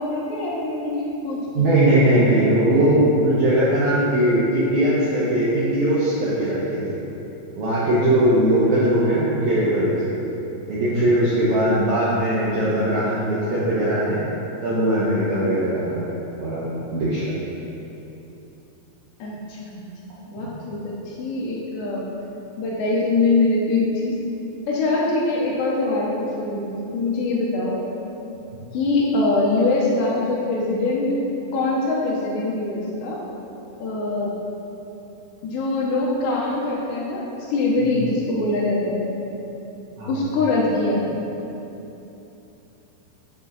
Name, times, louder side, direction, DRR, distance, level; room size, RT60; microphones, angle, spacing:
voice 1, 0.0-2.4 19.2-19.9 20.3-22.0 22.6-24.2 24.7-27.8 28.7-31.1 31.5-33.2 33.8-34.3 35.4-37.2 37.5-39.1 40.1-41.2, left 2 dB, 75° left, -4 dB, 3.1 m, -23 dB
voice 2, 1.5-7.0 7.6-10.1 10.7-14.2 14.6-16.1 16.4-17.2 20.4-20.5 28.5-28.6 40.0-40.1, right 1 dB, 80° right, -8 dB, 1.7 m, -20 dB
8.7 x 7.3 x 4.0 m, 2.9 s
omnidirectional pair, 5.2 m